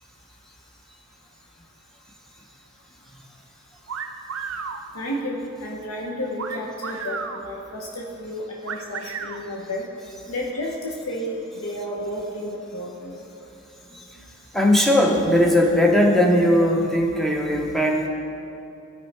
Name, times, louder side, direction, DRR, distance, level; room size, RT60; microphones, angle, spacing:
sound 1, 3.9-4.8 6.4-7.4 8.7-9.4, right 6 dB, 65° right, 0.5 m, -32 dB
voice 1, 4.9-9.9 10.3-13.2 14.8-14.9, equal, 75° left, -2 dB, 0.7 m, -31 dB
voice 2, 14.5-18.1, left 1 dB, ahead, -1 dB, 0.6 m, -19 dB
12.5 x 5.3 x 3.3 m, 2.7 s
head